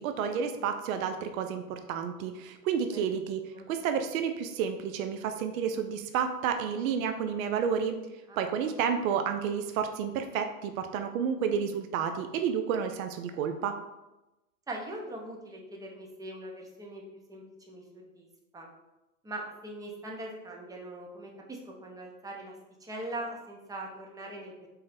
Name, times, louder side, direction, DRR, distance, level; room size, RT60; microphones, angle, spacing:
voice 1, 0.0-3.4 3.7-8.0 8.4-13.7, right 7 dB, 65° right, 7 dB, 0.5 m, -30 dB
voice 2, 14.7-17.0 17.3-18.3 18.5-18.7 19.2-22.5 22.8-24.7, right 1 dB, 10° right, -1 dB, 0.5 m, -41 dB
4.0 x 2.0 x 4.0 m, 0.99 s
hypercardioid pair, 90°, 45 cm